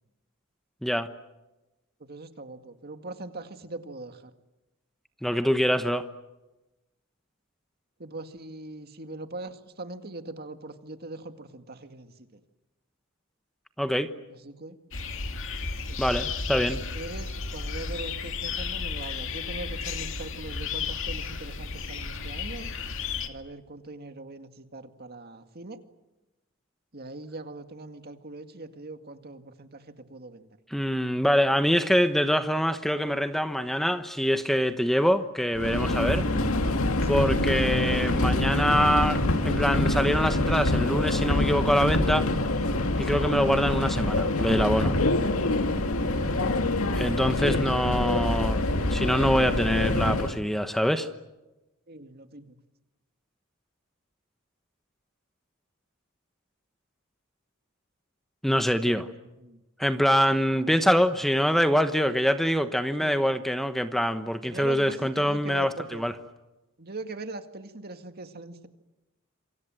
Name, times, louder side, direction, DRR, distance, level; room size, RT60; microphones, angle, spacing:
voice 1, 2.0-4.3 8.0-12.4 14.4-14.8 15.9-16.2 16.5-22.7 23.3-25.8 26.9-30.6 37.0-37.3 43.1-43.3 46.1-46.3 51.9-52.5 58.8-59.1 59.4-59.6 63.0-63.4 64.5-66.1 66.8-68.7, right 2 dB, 50° right, 7 dB, 2.0 m, -41 dB
voice 2, 5.2-6.0 13.8-14.1 16.0-16.8 30.7-36.2 37.1-42.3 43.0-44.9 46.9-51.1 58.4-59.1 59.8-66.2, equal, ahead, 8 dB, 1.0 m, -24 dB
sound 1, 14.9-23.3, left 5 dB, 65° left, 2.3 m, -33 dB
Subway metro underground, 35.6-50.4, left 2 dB, 80° left, 2.0 m, -25 dB
27.5 x 25.0 x 7.7 m, 1.0 s
head